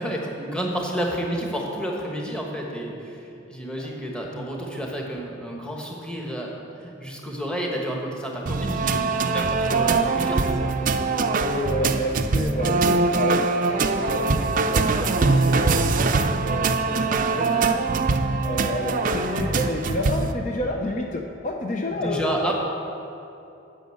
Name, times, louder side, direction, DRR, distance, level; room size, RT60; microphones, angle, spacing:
voice 1, 0.0-10.7 17.1-17.8 21.9-22.5, right 1 dB, 5° left, -1 dB, 1.3 m, -30 dB
voice 2, 4.3-4.8 11.4-17.5 18.4-22.5, left 1 dB, 40° left, 1 dB, 0.6 m, -30 dB
sound 1, 8.5-20.3, right 3 dB, 40° right, 0.5 m, -22 dB
9.1 x 6.4 x 7.7 m, 2.9 s
head